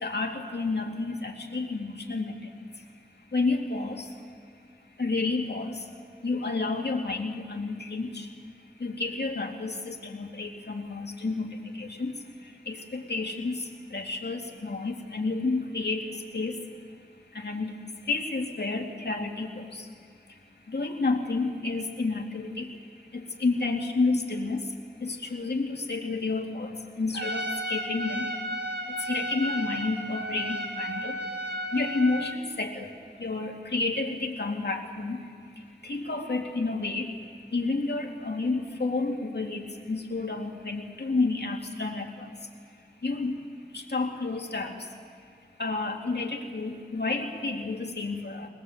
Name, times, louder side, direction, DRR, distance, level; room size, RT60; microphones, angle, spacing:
voice 1, 0.0-2.3 3.3-4.0 5.0-5.8 6.2-8.3 8.8-11.5 11.8-12.1 12.7-13.6 13.9-16.0 16.3-16.6 17.3-17.8 18.1-19.8 20.7-22.7 23.1-24.6 25.0-26.7 27.0-28.3 29.0-31.1 31.7-32.9 33.2-35.2 35.8-37.1 37.5-42.1 43.0-43.3 43.7-44.8 45.6-48.5, left 3 dB, 85° left, 1 dB, 2.3 m, -30 dB
Trumpet, 27.1-32.4, equal, 85° right, 1.8 m, -33 dB
22.5 x 20.5 x 7.9 m, 2.2 s
wide cardioid pair, 60°, 17 cm